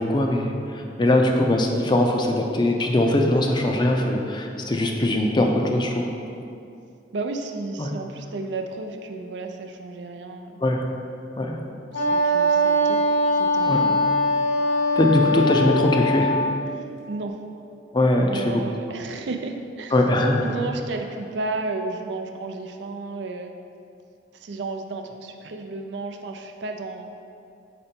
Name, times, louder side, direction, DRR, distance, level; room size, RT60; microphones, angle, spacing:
voice 1, 0.0-6.1 7.8-7.9 10.6-10.8 11.4-11.6 13.7-13.8 15.0-16.3 17.9-18.6 19.9-20.4, left 1 dB, 25° left, 2 dB, 0.5 m, -21 dB
voice 2, 7.1-10.5 11.9-13.0 13.4-14.0 16.7-17.3 18.2-20.0 20.4-23.5 24.3-27.1, right 3 dB, 80° right, 5 dB, 0.5 m, -33 dB
Wind instrument woodwind instrument, 11.9-16.6, equal, 80° left, 1.2 m, -21 dB
5.2 x 4.3 x 4.3 m, 2.5 s
head